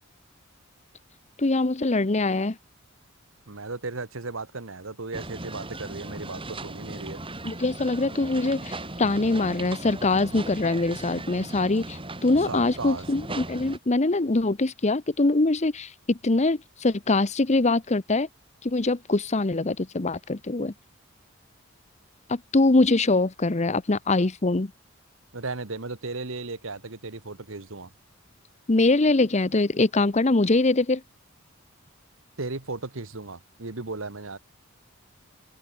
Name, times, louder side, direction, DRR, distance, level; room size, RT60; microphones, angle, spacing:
voice 1, 1.4-2.6 7.4-18.3 18.6-20.7 22.3-24.7 28.7-31.0, left 2 dB, 35° left, 0.9 m, -23 dB
voice 2, 3.5-7.2 12.5-13.0 25.3-27.9 32.4-34.4, right 3 dB, 75° right, 1.7 m, -35 dB
sound 1, 5.1-13.8, right 2 dB, 25° right, 7.9 m, -38 dB
open air
head